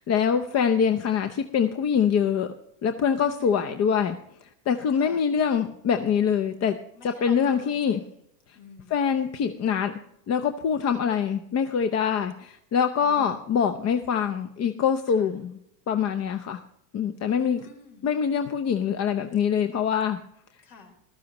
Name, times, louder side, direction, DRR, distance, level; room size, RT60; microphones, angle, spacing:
voice 1, 0.0-2.5 2.8-4.1 4.7-6.7 7.0-8.0 8.9-9.9 10.3-15.6 15.9-16.6 16.9-17.7 18.0-20.2, left 7 dB, 40° left, 8 dB, 0.7 m, -24 dB
voice 2, 0.5-1.0 3.4-3.9 5.0-5.2 7.0-7.9 8.6-8.9 13.0-13.3 17.4-18.1 20.6-20.9, left 4 dB, 55° left, 2 dB, 4.1 m, -46 dB
14.5 x 12.5 x 3.0 m, 0.74 s
supercardioid pair, 110°, 40 cm